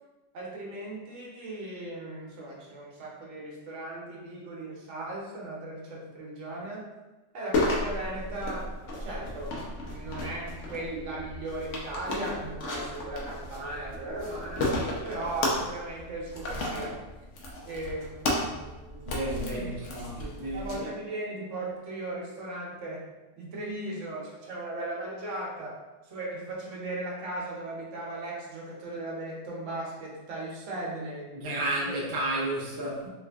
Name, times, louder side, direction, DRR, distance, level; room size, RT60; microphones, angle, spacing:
voice 1, 0.3-6.9 7.3-8.7 9.0-9.6 9.9-14.8 15.0-17.0 17.6-19.7 20.2-23.1 23.4-31.3 31.8-32.0, right 2 dB, 75° right, -3 dB, 1.1 m, -37 dB
sound 1, 7.5-20.7, left 2 dB, 75° left, 1.0 m, -33 dB
voice 2, 19.0-20.9 31.3-33.1, right 1 dB, 30° right, -4 dB, 0.4 m, -32 dB
3.0 x 2.5 x 3.3 m, 1.2 s
omnidirectional pair, 1.3 m